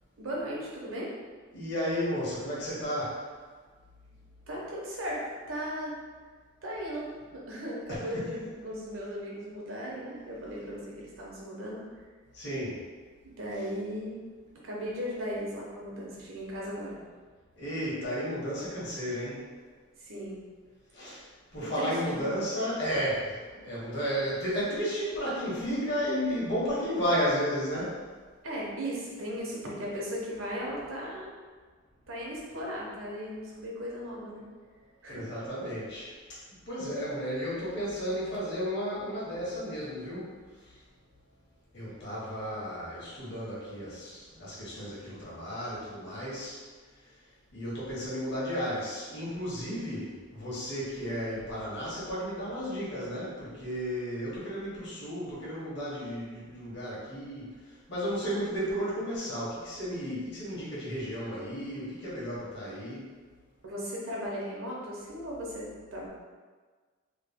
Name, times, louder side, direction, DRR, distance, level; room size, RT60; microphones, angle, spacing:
voice 1, 0.2-1.1 4.5-6.0 6.6-11.8 13.4-14.2 14.6-17.0 20.0-20.4 21.6-22.3 28.4-31.3 32.1-34.4 35.0-35.2 63.6-66.1, equal, 80° right, -4 dB, 0.9 m, -37 dB
voice 2, 1.5-3.2 7.9-8.0 12.3-12.8 17.6-19.4 20.9-21.2 21.5-28.0 35.1-36.1 36.5-40.3 40.6-40.8 41.7-46.6 47.5-57.5 57.9-63.1, equal, 55° left, -7 dB, 1.2 m, -33 dB
3.1 x 2.2 x 3.5 m, 1.5 s
head